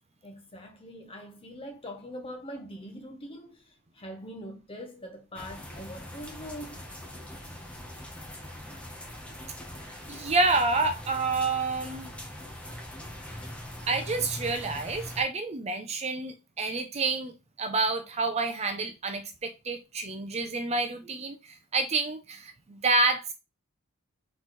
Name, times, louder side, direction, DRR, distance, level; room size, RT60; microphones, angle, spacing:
voice 1, 0.2-6.8, equal, 25° left, 1.1 m, -43 dB
sound 1, 5.3-15.2, left 1 dB, 5° left, 0.9 m, -42 dB
voice 2, 9.8-12.1 13.9-17.3 17.6-23.3, right 3 dB, 30° right, 0.5 m, -28 dB
4.0 x 3.9 x 3.1 m
head